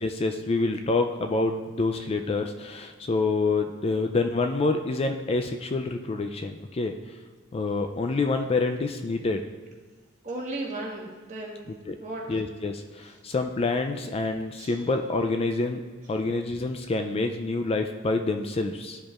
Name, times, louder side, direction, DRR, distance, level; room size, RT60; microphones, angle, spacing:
voice 1, 0.0-6.9 7.5-9.4 11.9-12.0 12.3-12.7 13.2-15.8 16.1-19.0, left 3 dB, 30° left, 6 dB, 0.3 m, -27 dB
voice 2, 10.2-11.7 12.0-12.4 14.6-14.8, right 2 dB, 35° right, -2 dB, 1.4 m, -35 dB
12.0 x 5.1 x 2.4 m, 1.4 s
head